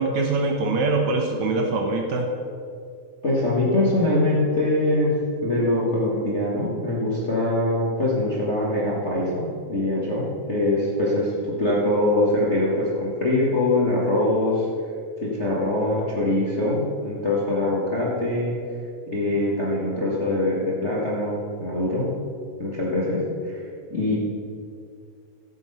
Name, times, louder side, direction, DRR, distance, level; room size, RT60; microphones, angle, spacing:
voice 1, 0.0-2.3, right 3 dB, 65° right, 2 dB, 2.1 m, -23 dB
voice 2, 3.2-5.1 5.4-14.7 15.2-18.5 19.1-22.0 22.6-23.6 23.9-24.2, left 1 dB, 35° left, -6 dB, 1.2 m, -23 dB
15.0 x 6.2 x 5.6 m, 2.3 s
omnidirectional pair, 3.7 m